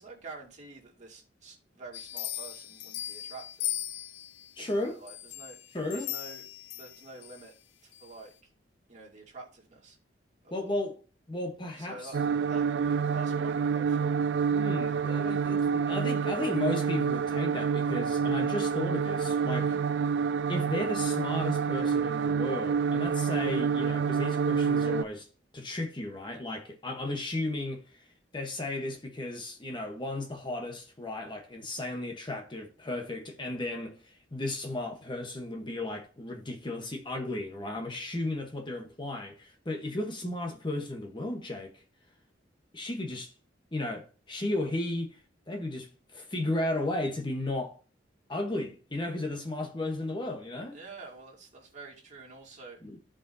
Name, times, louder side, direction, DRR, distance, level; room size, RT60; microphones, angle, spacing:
voice 1, 0.0-3.8 4.6-6.4 6.7-7.5 7.8-8.5 8.9-10.0 10.4-10.7 11.8-12.2 12.5-12.7 13.1-14.1 50.7-52.8, right 3 dB, 40° right, 2.5 m, -47 dB
sound 1, 1.9-4.5 5.1-7.4 7.9-8.0, left 12 dB, 90° left, 0.6 m, -38 dB
voice 2, 4.6-5.0 5.7-6.1 10.5-11.0 11.3-12.1 14.5-19.8 20.5-25.3 25.5-28.1 28.3-41.8 42.7-43.3 43.7-45.2 45.5-47.8 48.3-50.8 52.8-53.0, left 2 dB, 25° left, 1.1 m, -34 dB
sound 2, 12.1-25.0, right 6 dB, 80° right, 0.3 m, -28 dB
14.5 x 5.0 x 2.7 m
head